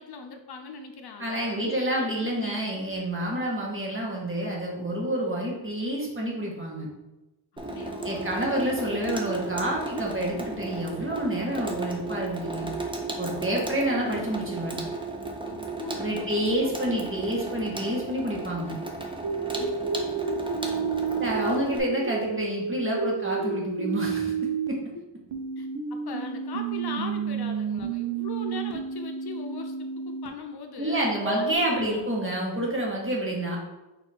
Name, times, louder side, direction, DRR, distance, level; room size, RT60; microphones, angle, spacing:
voice 1, 0.0-2.8 7.7-8.5 15.4-16.8 19.5-20.4 24.9-25.0 25.6-32.0, left 5 dB, 55° left, 4 dB, 0.7 m, -41 dB
voice 2, 1.2-6.9 8.0-12.7 13.2-14.8 16.0-18.8 21.2-24.8 30.8-33.6, right 1 dB, 25° right, -3 dB, 1.5 m, -28 dB
Water tap faucet / Sink (filling or washing), 7.6-21.8, right 2 dB, 10° right, 0.7 m, -35 dB
sound 1, 19.2-24.7 25.3-30.3 31.2-31.5, right 5 dB, 80° right, 0.8 m, -30 dB
4.2 x 2.7 x 4.4 m, 1.0 s
cardioid pair, 55°, 45 cm